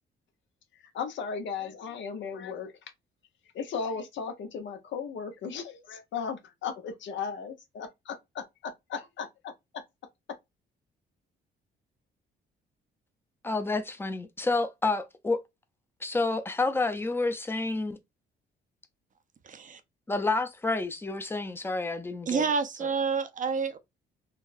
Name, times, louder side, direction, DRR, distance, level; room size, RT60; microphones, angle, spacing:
voice 1, 0.9-2.7 3.5-9.8, left 6 dB, 70° left, 0.8 m, -36 dB
voice 2, 13.4-15.4 16.0-18.0 20.1-22.4 22.8-22.9, left 3 dB, 10° left, 0.6 m, -29 dB
voice 3, 19.4-19.8 22.3-23.8, right 5 dB, 40° right, 0.6 m, -29 dB
3.8 x 2.2 x 2.5 m
cardioid pair, 90°, 20 cm